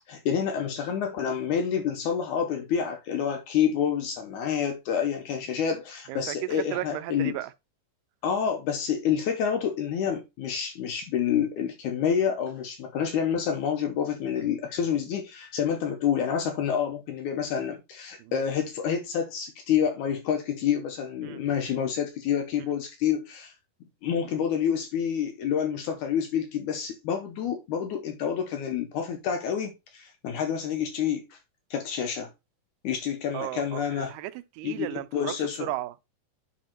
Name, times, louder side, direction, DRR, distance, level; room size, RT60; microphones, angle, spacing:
voice 1, 0.0-7.4 8.2-23.5 24.0-31.3 31.7-32.3 32.8-34.1 34.6-35.7, left 8 dB, 70° left, 2.1 m, -28 dB
voice 2, 6.1-7.5 18.2-18.3 21.2-21.4 33.3-36.0, right 16 dB, 85° right, 2.2 m, -35 dB
9.9 x 3.4 x 4.4 m
omnidirectional pair, 3.9 m